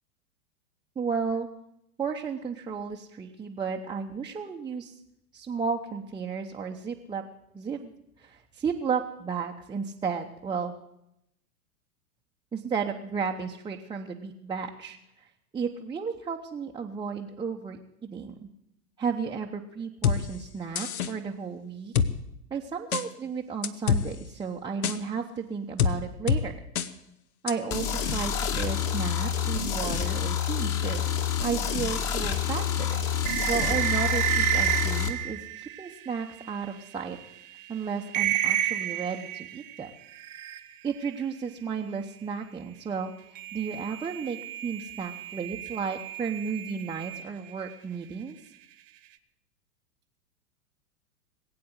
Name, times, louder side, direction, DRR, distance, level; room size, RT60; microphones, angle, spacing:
voice 1, 1.0-1.5 2.0-4.9 5.3-7.2 7.5-7.9 8.2-10.7 12.5-15.3 15.5-18.5 19.0-21.9 22.5-26.6 27.4-31.1 31.4-33.0 33.5-37.2 37.7-39.9 40.8-44.4 44.6-48.4, right 6 dB, 10° right, -1 dB, 0.9 m, -33 dB
sound 1, 20.0-20.2 20.8-21.1 22.0-22.1 22.9-23.0 23.6-24.0 24.8-25.0 25.8-25.9 26.3-26.4 26.8-26.9 27.5-27.6, left 7 dB, 70° left, 1.2 m, -24 dB
sound 2, 27.7-35.1, left 8 dB, 35° left, 1.9 m, -28 dB
sound 3, 32.3-36.6 37.2-37.3 37.6-37.7 38.1-41.0 43.3-47.7, right 12 dB, 55° right, 1.4 m, -31 dB
20.5 x 8.6 x 8.0 m, 0.82 s
hypercardioid pair, 105°, 45 cm